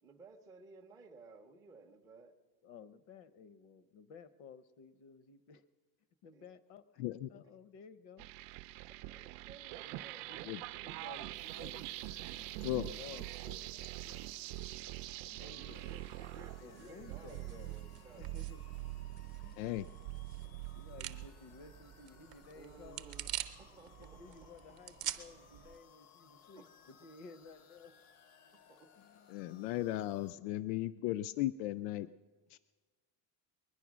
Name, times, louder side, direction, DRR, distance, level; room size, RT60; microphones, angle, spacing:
voice 1, 0.0-2.3 6.3-6.5 9.1-10.5 15.4-18.4 22.5-23.3 23.6-24.4 26.6-26.7 28.7-28.9, right 4 dB, 10° right, 1 dB, 0.4 m, -57 dB
voice 2, 2.6-5.6 6.2-7.0 7.3-8.3 10.3-10.5 10.8-12.0 12.3-13.7 14.0-14.3 15.2-16.0 16.6-17.8 18.2-18.6 19.4-19.9 20.7-23.3 24.0-27.9 29.0-29.3, left 5 dB, 65° left, 15 dB, 0.9 m, -55 dB
voice 3, 7.0-7.3 10.5-10.6 12.6-12.9 19.6-19.9 29.3-32.1 32.5-32.6, left 15 dB, 80° left, 15 dB, 0.5 m, -36 dB
sound 1, 8.2-21.3, right 17 dB, 80° right, 0.6 m, -44 dB
sound 2, 11.3-30.3, left 8 dB, 35° left, 0.6 m, -62 dB
sound 3, 16.6-25.8, right 13 dB, 40° right, 0.7 m, -47 dB
21.5 x 10.0 x 6.1 m, 1.4 s
cardioid pair, 170°, 46 cm